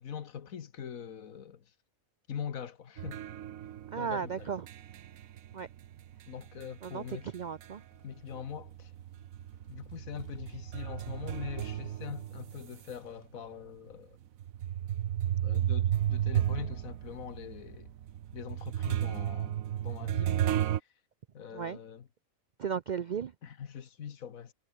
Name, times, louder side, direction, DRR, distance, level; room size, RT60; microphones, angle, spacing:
voice 1, 0.0-1.7 2.3-3.2 4.0-4.5 6.2-7.3 8.0-8.9 9.7-14.2 15.4-17.9 18.3-19.6 19.8-20.4 21.3-22.1 23.4-24.5, left 8 dB, 80° left, 1.7 m, -42 dB
sound 1, 3.0-8.0 8.3-12.9 13.5-13.6 14.4-20.8, right 11 dB, 80° right, 1.2 m, -33 dB
voice 2, 3.9-4.6 5.5-5.7 6.8-7.0 7.3-7.8 21.5-21.8 22.6-23.3, right 7 dB, 65° right, 0.4 m, -35 dB
sound 2, 6.4-13.3, left 2 dB, 45° left, 4.7 m, -66 dB
omnidirectional pair, 1.4 m